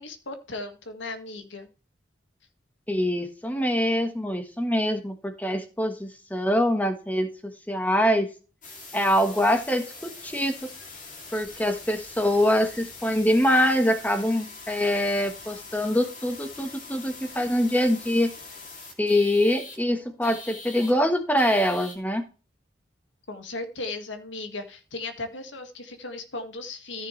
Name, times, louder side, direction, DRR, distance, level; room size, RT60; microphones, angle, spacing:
voice 1, 0.0-1.7 23.3-27.1, left 2 dB, 85° left, 7 dB, 1.9 m, -36 dB
voice 2, 2.9-8.3 8.9-10.7 11.3-18.3 19.0-22.3, equal, 10° left, 7 dB, 1.3 m, -24 dB
sound 1, 8.6-19.8 20.2-20.9 21.4-22.0, left 3 dB, 45° left, 2.8 m, -43 dB
14.5 x 6.7 x 3.3 m, 0.34 s
head